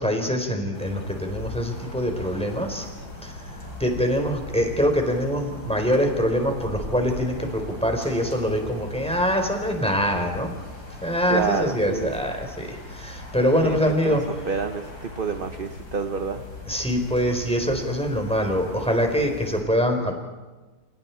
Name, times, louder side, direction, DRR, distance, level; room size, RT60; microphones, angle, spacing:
voice 1, 0.0-2.9 3.2-3.3 3.8-10.5 11.0-14.2 16.7-20.1, equal, 5° left, 3 dB, 3.9 m, -24 dB
sound 1, 0.7-19.6, left 2 dB, 85° left, 5.7 m, -39 dB
voice 2, 11.3-12.2 13.6-16.4, right 5 dB, 40° right, 8 dB, 1.0 m, -28 dB
29.0 x 27.5 x 4.5 m, 1.2 s
omnidirectional pair, 1.7 m